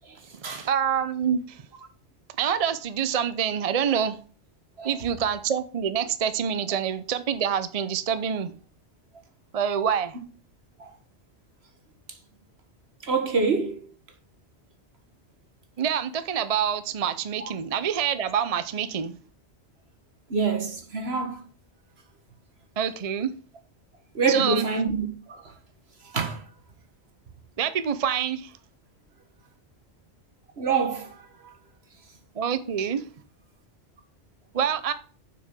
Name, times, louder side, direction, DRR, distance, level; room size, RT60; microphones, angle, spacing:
voice 1, 0.5-1.6 2.4-4.2 4.8-8.5 9.5-10.2 15.8-19.1 22.8-23.3 24.3-24.6 27.6-28.5 32.4-33.0 34.5-34.9, right 8 dB, 40° right, 0.6 m, -26 dB
voice 2, 13.0-13.8 20.3-21.4 24.2-25.4 26.1-26.4 30.6-31.1, right 4 dB, 65° right, 1.8 m, -26 dB
7.1 x 6.2 x 6.1 m
omnidirectional pair, 1.2 m